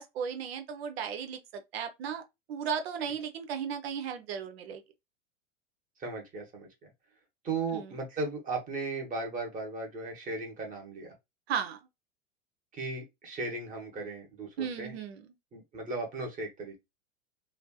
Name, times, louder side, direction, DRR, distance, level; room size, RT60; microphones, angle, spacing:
voice 1, 0.0-2.2 2.5-4.8 7.7-7.9 11.5-11.8 14.6-15.2, right 7 dB, 50° right, 0.7 m, -35 dB
voice 2, 6.0-6.9 7.4-11.1 12.7-15.0 15.5-16.8, right 3 dB, 20° right, 1.2 m, -36 dB
3.2 x 2.6 x 2.3 m
figure-of-eight pair, 90°, 38 cm